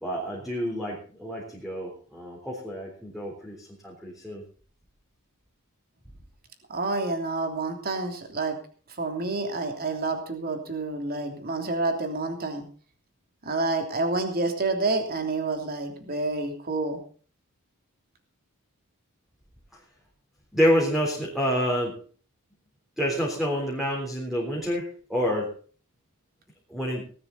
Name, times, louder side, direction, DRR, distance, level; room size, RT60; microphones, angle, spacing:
voice 1, 0.0-4.4 20.5-22.0 23.0-25.5 26.7-27.0, equal, ahead, -2 dB, 3.7 m, -28 dB
voice 2, 6.7-8.6 9.0-12.6 13.4-17.0, right 3 dB, 45° right, 5 dB, 3.1 m, -28 dB
19.0 x 12.5 x 4.1 m, 0.41 s
head